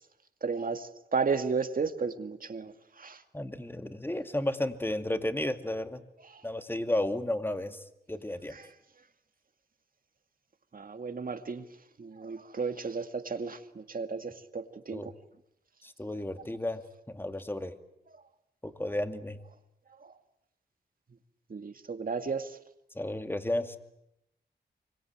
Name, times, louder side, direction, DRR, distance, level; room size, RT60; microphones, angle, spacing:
voice 1, 0.4-2.7 3.0-3.2 10.7-11.6 12.0-15.1 21.5-22.6, right 5 dB, 50° right, 8 dB, 2.2 m, -33 dB
voice 2, 3.3-6.0 6.4-7.8 8.1-8.6 14.9-15.1 15.8-16.8 17.1-17.7 18.6-19.4 22.9-23.8, left 1 dB, 10° left, 8 dB, 2.3 m, -33 dB
25.5 x 23.5 x 8.9 m, 0.83 s
cardioid pair, 65°, 18 cm